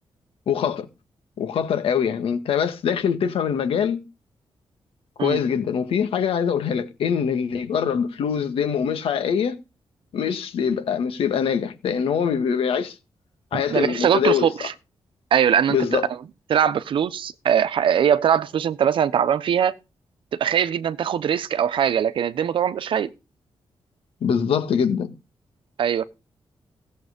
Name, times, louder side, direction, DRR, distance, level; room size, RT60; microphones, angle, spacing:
voice 1, 0.5-0.9 1.4-4.0 5.2-9.6 10.1-12.9 13.5-14.5 15.7-16.1 24.2-25.1, left 7 dB, 80° left, 1.9 m, -23 dB
voice 2, 13.5-14.7 15.3-16.0 16.5-19.7 20.4-23.1 25.8-26.1, right 8 dB, 65° right, 0.9 m, -21 dB
16.5 x 7.6 x 5.2 m
wide cardioid pair, 175°, 9 cm